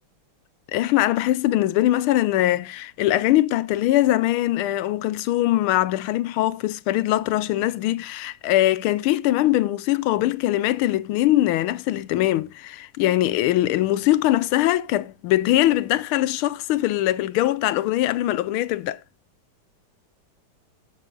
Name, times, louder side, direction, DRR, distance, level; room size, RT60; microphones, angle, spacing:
voice 1, 0.7-19.0, left 15 dB, 85° left, 1.5 m, -22 dB
13.0 x 6.2 x 3.7 m
omnidirectional pair, 2.3 m